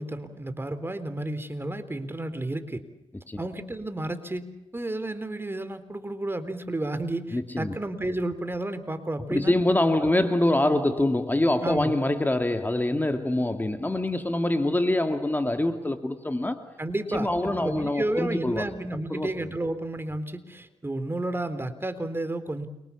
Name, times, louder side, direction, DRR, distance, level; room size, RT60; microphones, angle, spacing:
voice 1, 0.0-2.8 3.4-4.4 4.7-9.5 10.0-10.1 11.6-11.9 16.8-22.7, right 1 dB, 20° right, 3.5 m, -31 dB
voice 2, 7.3-7.7 9.3-16.6 17.1-18.7 19.1-19.3, left 1 dB, 15° left, 2.3 m, -25 dB
29.5 x 24.5 x 7.1 m
cardioid pair, 65°, 11 cm